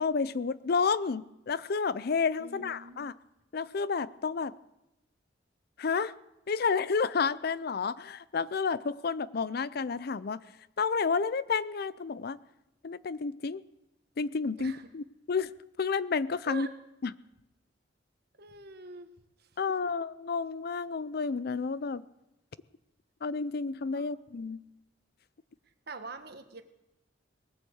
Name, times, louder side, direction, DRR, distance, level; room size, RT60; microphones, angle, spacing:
voice 1, 0.0-3.1 3.5-4.5 5.8-6.1 6.5-10.4 10.8-12.4 12.8-13.6 14.2-15.5 15.8-16.7 17.0-17.1 19.6-22.1 23.2-24.6, left 5 dB, 55° left, 17 dB, 0.5 m, -30 dB
voice 2, 2.4-3.0 14.6-14.9 16.5-16.7 18.4-19.1 19.4-19.5 23.9-24.2 25.9-26.6, right 3 dB, 55° right, 8 dB, 1.3 m, -44 dB
19.5 x 8.3 x 7.9 m, 0.92 s
head